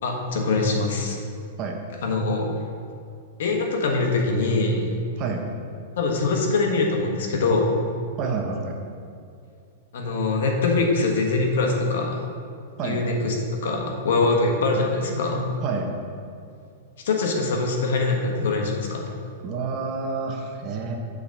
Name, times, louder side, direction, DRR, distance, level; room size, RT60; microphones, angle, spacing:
voice 1, 0.0-1.2 2.0-2.5 3.4-4.9 6.0-7.8 9.9-12.3 12.8-13.3 13.6-15.4 17.0-19.1, left 3 dB, 75° left, 1 dB, 1.5 m, -23 dB
voice 2, 5.2-5.5 8.2-8.8 12.8-13.0 15.6-15.9 19.4-21.0, right 4 dB, 35° right, 2 dB, 1.1 m, -29 dB
8.6 x 4.0 x 6.7 m, 2.4 s
supercardioid pair, 150°, 0 cm